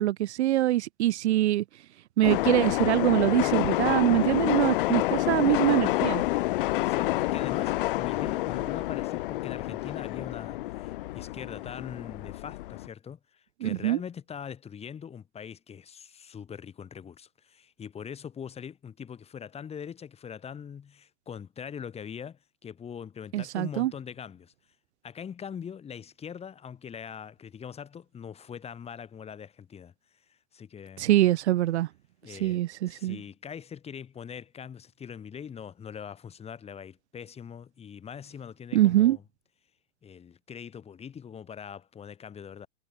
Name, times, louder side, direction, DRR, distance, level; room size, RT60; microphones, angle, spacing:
voice 1, 0.0-1.6 2.2-6.2 13.6-14.0 23.3-23.9 31.0-31.9 32.3-33.2 38.7-39.2, right 14 dB, 60° right, 1.2 m, -24 dB
sound 1, 2.2-12.9, left 17 dB, 45° left, 0.5 m, -28 dB
voice 2, 6.7-24.5 25.0-29.9 30.3-31.1 32.2-39.2 40.0-42.7, left 7 dB, 15° left, 6.2 m, -42 dB
hypercardioid pair, 140°, 38 cm